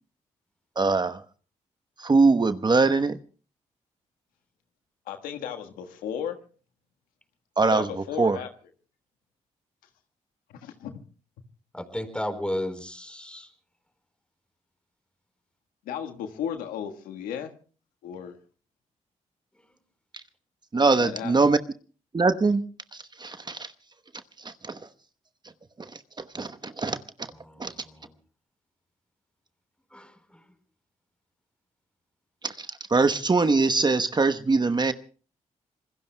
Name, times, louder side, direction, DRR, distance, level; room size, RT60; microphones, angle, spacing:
voice 1, 0.8-1.2 2.0-3.2 7.6-7.9 8.2-8.4 20.7-21.6 22.1-22.6 22.9-23.7 24.4-24.8 25.8-27.3 27.6-27.7 32.4-34.9, right 3 dB, 30° right, 11 dB, 1.0 m, -23 dB
voice 2, 5.0-6.4 7.6-8.5 10.5-11.0 15.8-17.5 18.0-18.4 20.7-21.3, left 8 dB, 90° left, 6 dB, 1.5 m, -34 dB
voice 3, 11.7-13.5 27.3-28.1 29.9-30.4, left 1 dB, 5° left, 7 dB, 4.3 m, -34 dB
27.0 x 21.0 x 2.2 m, 0.39 s
supercardioid pair, 50°, 14 cm